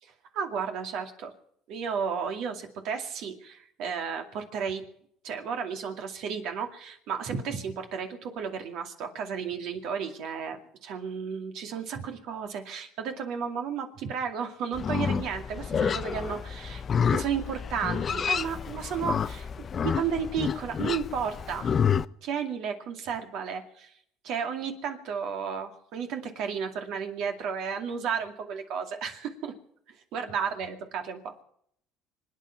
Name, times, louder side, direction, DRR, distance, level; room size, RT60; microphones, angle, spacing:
voice 1, 0.0-1.3 1.7-4.8 5.2-16.8 17.1-19.5 19.8-21.7 22.2-24.0 24.2-29.5 30.1-31.2, right 6 dB, 65° right, 5 dB, 2.3 m, -33 dB
Livestock farm animals working animals, 14.7-22.0, left 7 dB, 35° left, 0.5 m, -29 dB
26.0 x 9.5 x 5.8 m, 0.69 s
supercardioid pair, 100°, 0 cm